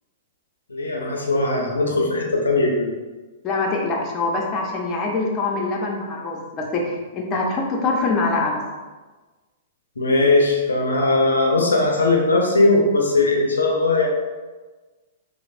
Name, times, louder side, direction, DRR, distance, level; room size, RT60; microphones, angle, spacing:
voice 1, 0.7-2.9 10.0-14.1, left 2 dB, 85° left, 1 dB, 0.4 m, -19 dB
voice 2, 3.4-8.6, left 3 dB, 30° left, -1 dB, 0.5 m, -24 dB
3.1 x 2.0 x 2.5 m, 1.3 s
hypercardioid pair, 115°, 0 cm